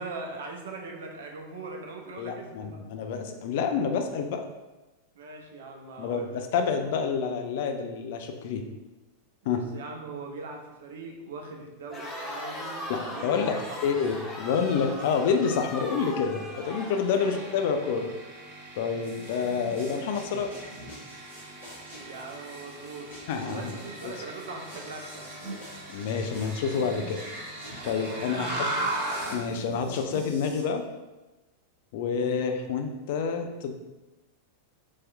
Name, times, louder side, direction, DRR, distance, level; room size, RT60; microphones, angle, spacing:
voice 1, 0.0-2.8 5.1-6.4 9.5-13.9 17.1-17.4 22.0-23.1 23.5-25.3 28.3-28.9 32.1-32.3, right 3 dB, 60° right, 2 dB, 0.4 m, -41 dB
voice 2, 2.2-4.4 6.0-8.6 9.5-9.6 12.9-18.1 18.8-20.7 23.3-23.8 24.0-24.1 25.9-27.2 27.8-28.5 29.3-30.8 31.9-33.7, left 6 dB, 50° left, 5 dB, 0.3 m, -28 dB
Crowd, 11.9-18.0, left 1 dB, 15° left, 0.7 m, -39 dB
sound 1, 17.1-29.5, right 1 dB, 35° right, 0.8 m, -38 dB
sound 2, 19.0-30.6, right 1 dB, 70° left, 1.4 m, -46 dB
3.1 x 2.8 x 2.2 m, 1.1 s
figure-of-eight pair, 90°, 0 cm